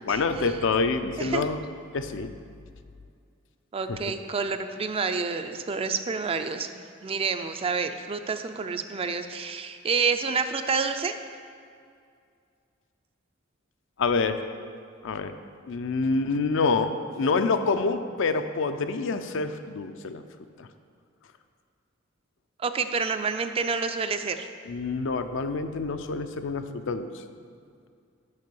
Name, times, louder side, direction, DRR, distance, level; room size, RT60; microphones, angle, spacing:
voice 1, 0.1-1.6 1.9-2.3 3.9-4.0 14.0-14.4 15.0-15.3 15.7-20.2 20.6-20.7 24.7-27.2, left 4 dB, 65° left, 9 dB, 0.5 m, -27 dB
voice 2, 3.7-11.2 22.6-24.5, right 5 dB, 30° right, 8 dB, 0.4 m, -28 dB
6.5 x 5.3 x 6.9 m, 2.3 s
head